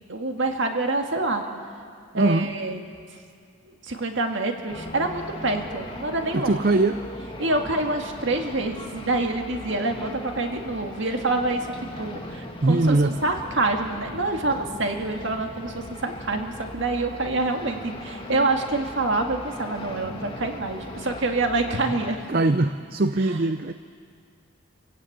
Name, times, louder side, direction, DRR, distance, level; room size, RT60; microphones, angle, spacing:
voice 1, 0.1-1.4 2.1-2.8 3.6-6.6 7.4-11.6 12.0-22.2 23.2-23.4, right 2 dB, 60° right, 3 dB, 2.1 m, -26 dB
voice 2, 2.1-2.5 6.3-7.0 12.6-13.2 22.3-23.7, right 2 dB, 45° right, 10 dB, 0.5 m, -21 dB
sound 1, 4.7-22.1, left 1 dB, 25° left, 1.8 m, -38 dB
26.5 x 16.0 x 8.7 m, 2.2 s
head